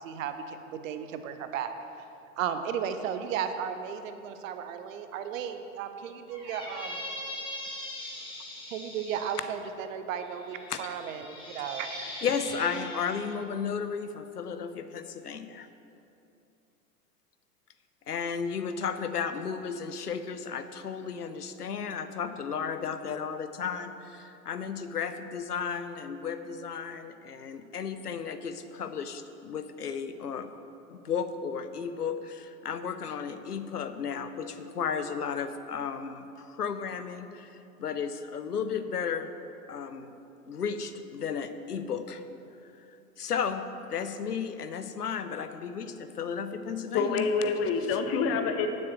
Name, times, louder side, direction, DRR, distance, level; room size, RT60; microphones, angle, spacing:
voice 1, 0.0-1.7 2.4-7.0 8.7-12.1, right 8 dB, 60° right, 8 dB, 0.9 m, -35 dB
Squeak, 6.3-9.4 10.2-13.3, left 1 dB, 10° left, 2.2 m, -41 dB
voice 2, 12.2-15.7 18.1-30.5 30.9-37.5 37.8-39.3 39.7-40.1 40.5-42.2 43.2-43.6 43.9-47.3, left 6 dB, 80° left, 10 dB, 0.8 m, -34 dB
voice 3, 46.9-48.7, left 5 dB, 30° left, 6 dB, 1.0 m, -27 dB
11.0 x 7.4 x 6.0 m, 2.7 s
figure-of-eight pair, 90°, 46 cm